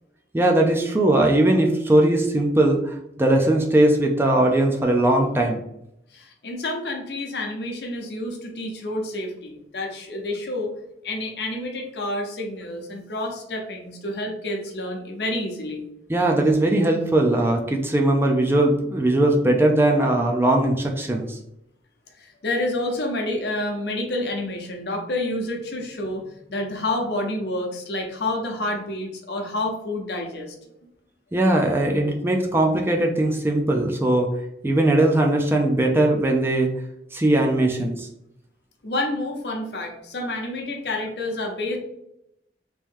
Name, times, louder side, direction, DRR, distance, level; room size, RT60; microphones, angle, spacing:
voice 1, 0.3-5.6 16.1-21.4 31.3-34.3 34.6-36.7 37.1-38.1, right 1 dB, 15° right, 1 dB, 0.4 m, -20 dB
voice 2, 6.1-10.7 11.0-15.8 22.2-26.2 26.5-30.5 38.8-41.8, left 1 dB, 65° left, 2 dB, 0.7 m, -29 dB
3.0 x 2.6 x 3.5 m, 0.80 s
head